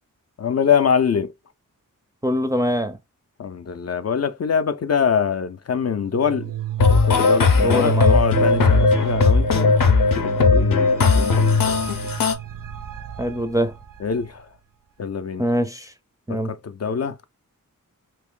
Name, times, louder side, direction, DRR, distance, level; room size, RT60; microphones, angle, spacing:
voice 1, 0.4-1.3 3.4-6.5 6.9-11.8 14.0-14.5 15.0-15.4 16.3-17.2, left 7 dB, 50° left, 0.4 m, -24 dB
voice 2, 2.2-3.0 7.5-8.2 13.2-13.7 15.4-15.9 16.3-16.5, equal, 10° right, 0.4 m, -23 dB
sound 1, 6.1-14.4, right 12 dB, 75° right, 0.5 m, -31 dB
sound 2, 6.8-12.3, left 4 dB, 80° left, 0.7 m, -17 dB
3.0 x 2.5 x 3.6 m
wide cardioid pair, 85°, 33 cm